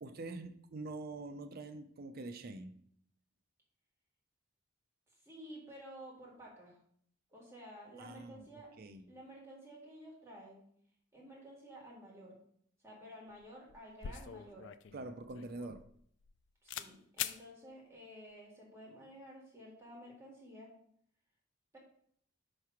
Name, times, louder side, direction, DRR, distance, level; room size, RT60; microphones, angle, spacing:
voice 1, 0.0-2.8 8.0-8.4 8.8-9.0 14.9-15.8, right 2 dB, 50° right, 9 dB, 0.5 m, -45 dB
voice 2, 5.2-6.8 7.3-8.7 9.1-10.6 11.1-12.4 12.8-14.7 16.6-20.7 21.7-21.8, equal, 15° right, -4 dB, 1.8 m, -52 dB
sound 1, 13.3-13.4 13.7-16.4 16.7-16.9 17.2-17.4, left 9 dB, 65° left, 0.3 m, -43 dB
5.7 x 3.3 x 5.7 m, 0.65 s
head